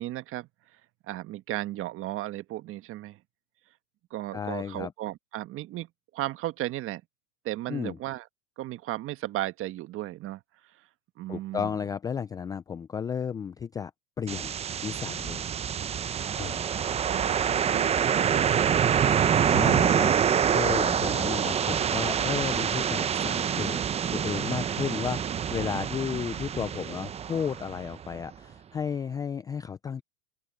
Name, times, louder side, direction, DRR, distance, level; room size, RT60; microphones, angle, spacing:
voice 1, 0.0-3.2 4.1-7.0 7.4-8.3 8.6-10.9 11.2-11.8 17.1-19.4, right 15 dB, 35° right, 1.6 m, -36 dB
voice 2, 4.3-4.9 7.7-8.0 11.3-13.9 14.2-14.6 14.8-15.5 16.4-16.6 19.5-20.1 20.5-23.8 24.1-30.0, left 7 dB, 10° left, 0.4 m, -33 dB
sound 1, 14.3-28.2, right 8 dB, 15° right, 0.7 m, -26 dB
open air
hypercardioid pair, 120°, 37 cm